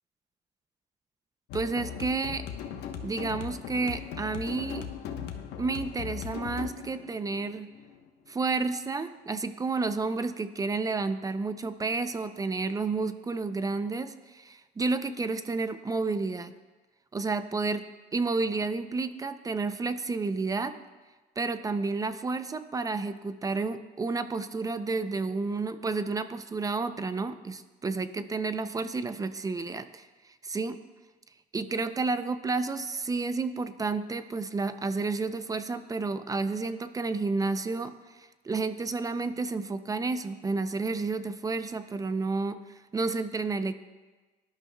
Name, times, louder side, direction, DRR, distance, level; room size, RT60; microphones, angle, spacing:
sound 1, 1.5-8.5, left 8 dB, 85° left, 1.0 m, -39 dB
voice 1, 1.5-2.4 3.0-4.9 5.6-7.7 8.3-16.5 17.1-17.9 18.1-20.7 21.4-30.1 30.4-30.8 31.5-43.7, right 3 dB, 20° right, 11 dB, 0.5 m, -31 dB
18.0 x 11.5 x 2.2 m, 1.3 s
cardioid pair, 110°, 17 cm